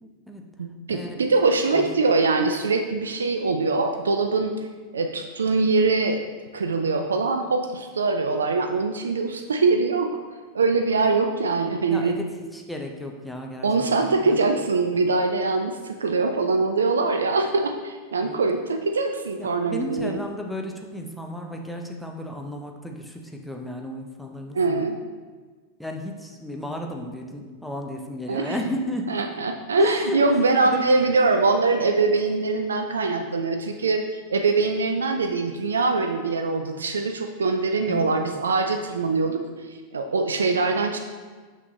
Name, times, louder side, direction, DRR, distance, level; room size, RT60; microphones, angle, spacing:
voice 1, 0.0-0.4 0.9-1.2 1.7-1.8 11.9-14.4 18.2-18.4 19.4-24.9 25.8-29.1 29.8-30.2 30.6-31.0 37.9-38.4, left 1 dB, ahead, 2 dB, 0.6 m, -34 dB
voice 2, 0.6-4.6 4.9-6.2 6.5-10.1 10.5-12.2 13.6-20.2 24.5-25.0 28.3-28.6 29.1-39.4 39.9-41.0, right 3 dB, 70° right, 5 dB, 0.3 m, -23 dB
5.8 x 5.7 x 3.0 m, 1.4 s
figure-of-eight pair, 90°, 0 cm